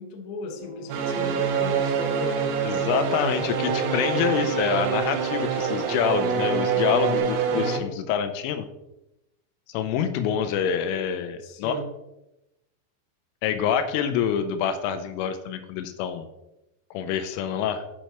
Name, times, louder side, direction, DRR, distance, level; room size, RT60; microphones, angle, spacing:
voice 1, 0.0-4.0 7.5-7.9 11.4-11.9, left 2 dB, 65° left, 2 dB, 2.5 m, -36 dB
sound 1, 0.6-7.2, equal, 35° left, 2.0 m, -40 dB
sound 2, 0.9-7.8, right 7 dB, 90° right, 3.7 m, -26 dB
voice 2, 2.6-8.7 9.7-11.8 13.4-16.3 16.9-17.8, left 8 dB, 85° left, 9 dB, 3.2 m, -26 dB
14.5 x 5.5 x 3.0 m, 0.91 s
omnidirectional pair, 5.7 m